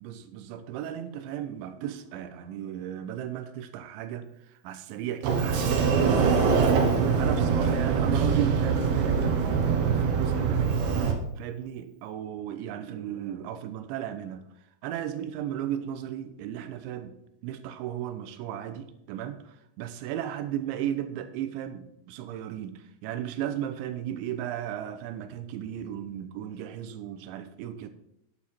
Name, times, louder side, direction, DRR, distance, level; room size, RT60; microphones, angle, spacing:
voice 1, 0.0-4.3 4.6-10.8 11.4-14.4 14.8-17.1 17.4-27.9, right 10 dB, 85° right, 3.1 m, -35 dB
Sliding door, 5.2-11.1, right 5 dB, 70° right, 3.1 m, -23 dB
9.8 x 9.5 x 4.3 m
omnidirectional pair, 5.3 m